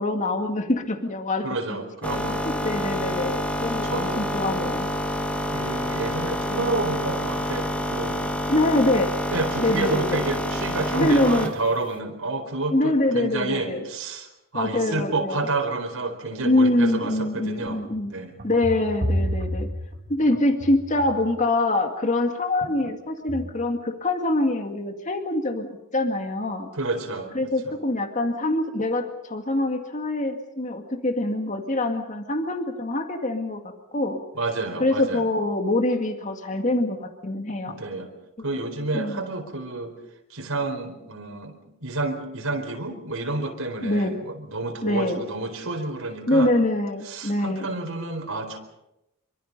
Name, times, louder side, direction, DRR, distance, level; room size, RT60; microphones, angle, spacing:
voice 1, 0.0-1.5 2.6-4.9 8.5-9.1 9.6-10.2 10.9-11.5 12.7-13.8 14.5-15.5 16.4-18.1 18.4-19.7 20.1-26.7 27.3-34.2 34.8-37.7 38.4-38.5 38.9-39.2 43.8-44.2 44.8-45.2 46.3-47.7, left 2 dB, 35° left, 5 dB, 2.1 m, -24 dB
voice 2, 1.4-2.4 3.8-4.2 5.5-8.3 9.3-17.8 18.1-18.4 26.7-27.8 34.4-35.2 37.7-38.1 38.4-39.9 40.3-46.5 47.0-48.6, right 2 dB, 70° right, 3 dB, 4.4 m, -29 dB
sound 1, 2.0-11.6, left 1 dB, 5° left, 2.0 m, -28 dB
sound 2, 17.7-21.3 22.6-22.9 23.3-23.7, equal, 45° right, 2.6 m, -30 dB
27.0 x 25.0 x 5.5 m, 0.88 s
head